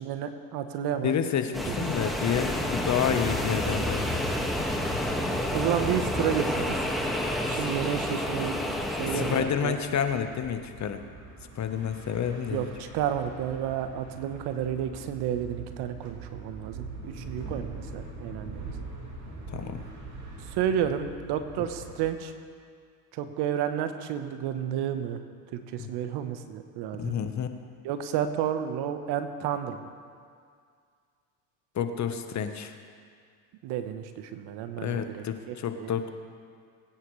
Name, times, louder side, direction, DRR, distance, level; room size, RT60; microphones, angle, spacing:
voice 1, 0.0-1.2 1.8-1.9 5.5-6.8 7.4-8.6 9.0-9.8 12.5-18.6 20.5-22.3 23.1-25.2 25.5-27.2 27.8-29.9 33.6-35.9, right 9 dB, 65° right, 9 dB, 1.2 m, -31 dB
voice 2, 1.0-4.3 9.0-11.0 11.5-12.7 19.5-19.8 25.8-25.9 27.0-27.5 31.7-32.7 34.8-36.1, left 8 dB, 40° left, 8 dB, 1.1 m, -29 dB
sound 1, 1.5-9.4, left 1 dB, ahead, 1.8 m, -29 dB
sound 2, 2.5-22.1, right 3 dB, 40° right, 2.8 m, -43 dB
22.0 x 9.8 x 3.3 m, 2.1 s
hypercardioid pair, 75°, 42 cm